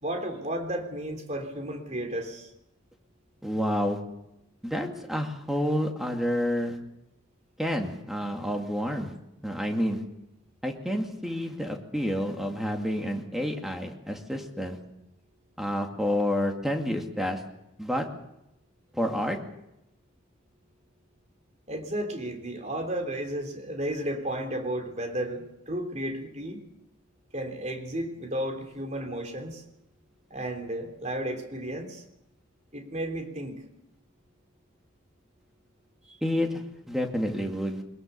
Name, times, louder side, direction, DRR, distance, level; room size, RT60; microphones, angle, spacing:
voice 1, 0.0-2.5 21.7-26.6 27.3-29.6 30.3-32.0 32.7-33.6, right 1 dB, 35° right, 4 dB, 3.5 m, -33 dB
voice 2, 3.4-4.0 4.6-6.8 7.6-9.1 9.4-10.0 10.6-14.8 15.6-17.4 17.8-18.0 18.9-19.4 36.2-36.6 36.9-37.8, equal, ahead, 2 dB, 2.3 m, -29 dB
22.0 x 21.5 x 6.9 m, 0.86 s
head